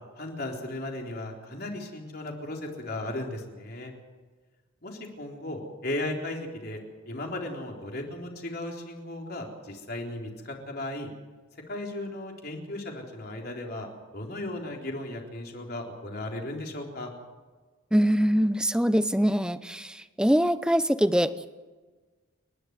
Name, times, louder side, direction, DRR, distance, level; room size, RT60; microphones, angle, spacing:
voice 1, 0.2-3.9 4.8-6.8 7.1-11.1 11.7-17.1, left 1 dB, 45° left, 0 dB, 3.9 m, -36 dB
voice 2, 17.9-21.5, equal, 5° right, 13 dB, 0.6 m, -23 dB
30.0 x 11.5 x 9.5 m, 1.4 s
head